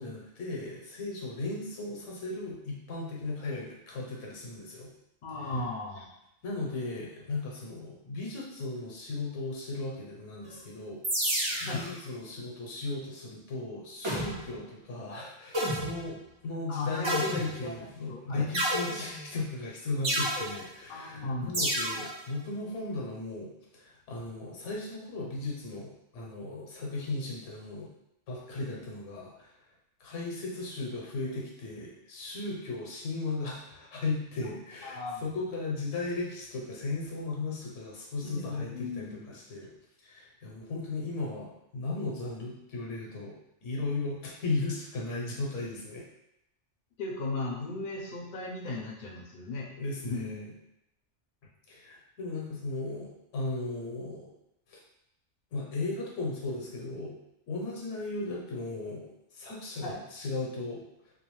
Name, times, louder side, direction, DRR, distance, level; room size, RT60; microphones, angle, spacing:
voice 1, 0.0-4.9 5.4-5.5 6.4-16.2 16.4-27.9 28.3-29.5 30.0-39.7 40.0-43.4 43.6-46.0 49.8-50.5 51.7-54.3 54.7-54.8 55.5-57.2 57.5-60.8, left 3 dB, 85° left, -3 dB, 1.1 m, -36 dB
voice 2, 5.2-6.1 11.6-11.9 16.7-18.5 20.9-21.6 34.8-35.3 38.2-39.4 47.0-49.7 50.0-50.3 59.8-60.0, left 2 dB, 55° left, -1 dB, 0.6 m, -36 dB
sound 1, 11.0-11.9 14.0-14.6 15.5-16.1 17.0-17.8 18.5-19.3 20.0-20.6 21.5-22.1, equal, 45° right, 0.3 m, -30 dB
2.4 x 2.3 x 3.0 m, 0.83 s
omnidirectional pair, 1.2 m